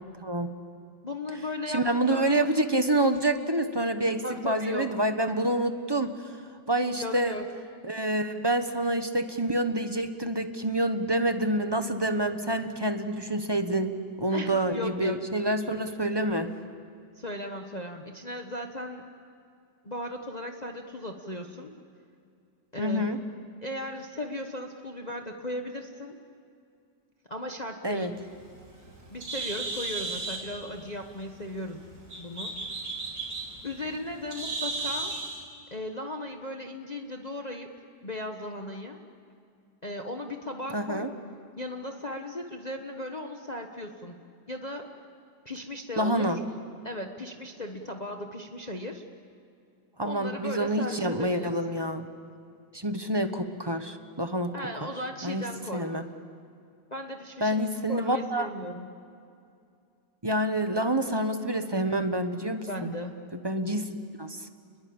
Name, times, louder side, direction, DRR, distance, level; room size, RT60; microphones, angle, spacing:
voice 1, 1.0-1.8 2.1-2.4 4.2-4.9 7.0-7.4 14.3-15.2 17.2-19.0 19.8-21.7 22.7-23.1 23.6-26.1 27.3-28.2 29.1-31.8 32.2-32.5 33.6-35.1 35.7-37.7 38.0-39.0 39.8-41.1 41.6-44.2 44.5-44.9 45.4-46.4 46.8-49.0 50.0-51.8 54.5-55.9 56.9-58.9 62.7-63.2, left 1 dB, 25° left, 3 dB, 1.3 m, -37 dB
voice 2, 1.7-6.2 6.7-7.4 7.8-16.5 22.8-23.2 27.8-28.1 40.7-41.1 46.0-46.4 50.0-52.1 52.7-54.5 55.2-55.4 55.7-56.1 57.4-58.5 60.2-62.9 63.3-63.9 64.2-64.4, right 1 dB, 15° right, 8 dB, 1.0 m, -27 dB
Bird, 28.1-35.4, right 3 dB, 65° right, 5.8 m, -36 dB
29.5 x 22.0 x 8.8 m, 2.4 s
omnidirectional pair, 1.9 m